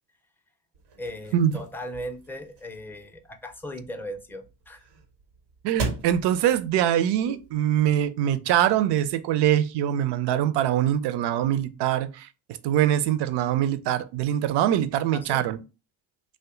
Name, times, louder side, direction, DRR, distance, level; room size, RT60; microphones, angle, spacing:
sound 1, 0.7-7.8, right 3 dB, 90° right, 0.9 m, -40 dB
voice 1, 1.0-4.8 15.1-15.5, equal, 5° left, 0.5 m, -38 dB
voice 2, 5.6-12.3 12.6-15.6, right 11 dB, 60° right, 0.5 m, -23 dB
2.6 x 2.2 x 3.6 m
hypercardioid pair, 55°, 46 cm